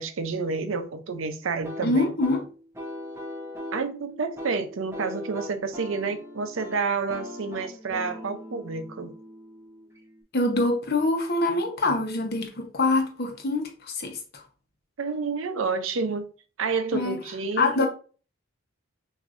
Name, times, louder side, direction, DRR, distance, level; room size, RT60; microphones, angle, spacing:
voice 1, 0.0-2.1 3.7-9.1 15.0-16.3 16.6-17.9, right 4 dB, 75° right, 0.6 m, -29 dB
sound 1, 1.6-10.2, left 1 dB, 15° right, 0.9 m, -40 dB
voice 2, 1.8-2.4 10.3-14.4 16.9-17.2 17.6-17.9, left 2 dB, 50° left, 1.0 m, -25 dB
6.2 x 2.7 x 2.5 m
head